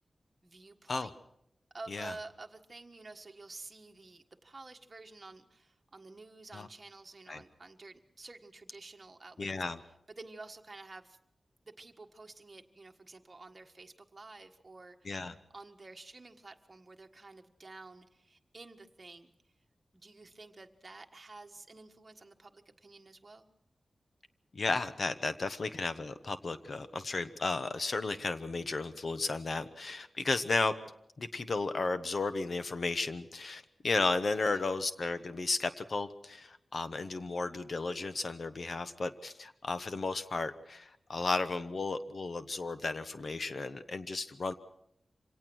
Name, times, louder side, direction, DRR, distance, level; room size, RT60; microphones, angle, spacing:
voice 1, 0.4-1.1 1.7-9.5 10.1-11.2 11.6-15.1 15.5-19.3 19.9-23.5 34.3-34.6, right 3 dB, 30° right, 4 dB, 1.5 m, -50 dB
voice 2, 9.4-9.8 15.0-15.3 24.5-30.7 31.2-44.5, left 3 dB, 50° left, 11 dB, 1.0 m, -34 dB
25.5 x 18.0 x 6.3 m, 0.76 s
wide cardioid pair, 140°, 0 cm